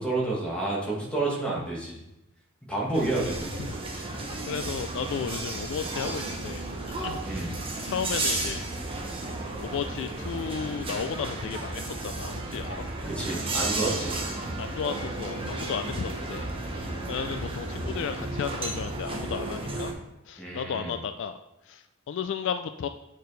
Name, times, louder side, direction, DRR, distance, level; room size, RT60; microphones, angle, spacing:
voice 1, 0.0-2.0 2.7-3.5 7.2-7.5 13.1-14.2 20.4-20.9, right 2 dB, 5° left, -4 dB, 1.5 m, -29 dB
sound 1, 2.9-19.9, right 2 dB, 25° right, 0.9 m, -33 dB
voice 2, 3.6-4.1 4.5-6.6 7.0-7.2 7.9-8.6 9.6-12.8 13.9-14.0 14.6-16.5 17.1-19.9 20.3-21.4 21.7-22.9, left 7 dB, 60° left, 9 dB, 0.3 m, -34 dB
8.1 x 4.6 x 3.2 m, 0.91 s
head